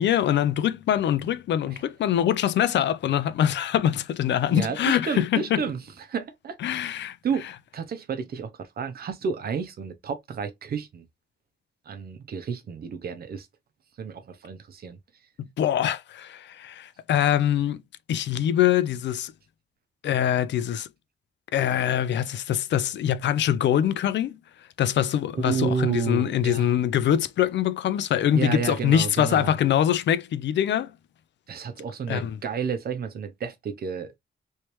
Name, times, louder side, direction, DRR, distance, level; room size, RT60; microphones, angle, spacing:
voice 1, 0.0-5.6 6.6-7.2 15.4-17.8 18.1-19.3 20.0-20.9 21.5-24.3 24.8-30.9 32.1-32.4, left 10 dB, 65° left, 0.4 m, -24 dB
voice 2, 4.5-6.9 7.2-7.5 7.7-11.0 11.9-13.5 14.0-15.0 25.3-26.7 28.3-29.5 31.5-34.1, right 6 dB, 50° right, 0.7 m, -31 dB
3.2 x 3.1 x 3.0 m
wide cardioid pair, 180°, 20 cm